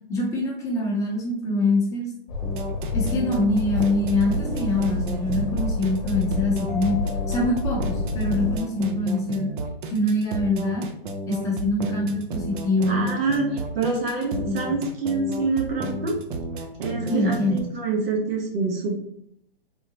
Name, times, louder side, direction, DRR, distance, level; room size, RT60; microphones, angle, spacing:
voice 1, 0.1-2.1 2.9-7.0 7.3-9.5 9.9-10.9 11.3-13.1 14.4-14.7 17.1-17.6, left 1 dB, 10° left, -4 dB, 0.7 m, -24 dB
Train, 2.3-8.6, left 3 dB, 45° left, 1.0 m, -29 dB
sound 1, 2.4-17.6, right 2 dB, 55° right, 0.5 m, -32 dB
Mallet percussion, 6.7-9.2, left 11 dB, 70° left, 0.7 m, -42 dB
voice 2, 12.9-16.2 16.8-19.0, right 3 dB, 75° right, 0 dB, 1.0 m, -26 dB
3.7 x 2.0 x 2.8 m, 0.72 s
hypercardioid pair, 140°, 30 cm